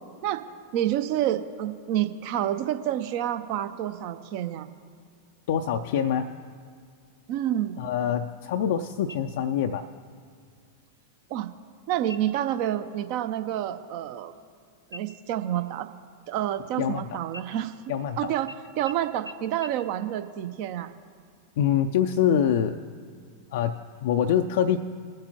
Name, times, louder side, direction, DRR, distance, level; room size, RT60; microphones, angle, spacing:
voice 1, 0.7-4.7 7.3-7.8 11.3-11.5 11.9-14.3 14.9-15.9 16.3-17.7 18.2-18.5 18.8-20.9, right 11 dB, 45° right, 10 dB, 0.6 m, -28 dB
voice 2, 5.5-6.3 7.8-9.9 16.8-17.2 17.9-18.3 21.6-22.8 23.5-24.8, left 9 dB, 55° left, 5 dB, 0.4 m, -25 dB
sound 1, 9.1-9.7 10.1-10.2 10.8-11.3 12.0-12.5 12.9-13.2 13.5-14.6 14.9-16.9 17.3-18.1 18.5-18.6 18.9-19.0 19.3-19.4 19.6-19.7, left 2 dB, 85° right, 0.6 m, -46 dB
23.0 x 7.7 x 2.9 m, 2.3 s
figure-of-eight pair, 90°, 0 cm